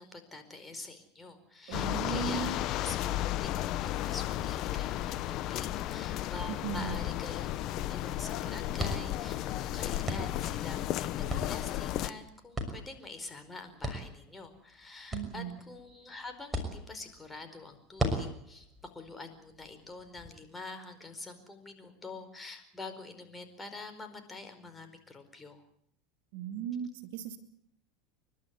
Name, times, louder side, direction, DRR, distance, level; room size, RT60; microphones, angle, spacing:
voice 1, 0.0-25.6, left 3 dB, 15° left, 7 dB, 4.6 m, -46 dB
sound 1, 1.7-12.1, left 14 dB, 55° left, 1.2 m, -34 dB
voice 2, 1.7-2.6 6.5-7.0 15.1-15.6 26.3-27.4, right 9 dB, 75° right, 7 dB, 2.2 m, -37 dB
sound 2, 8.8-20.3, equal, 10° right, 6.2 m, -40 dB
29.5 x 12.0 x 9.5 m, 0.69 s
hypercardioid pair, 95°, 0 cm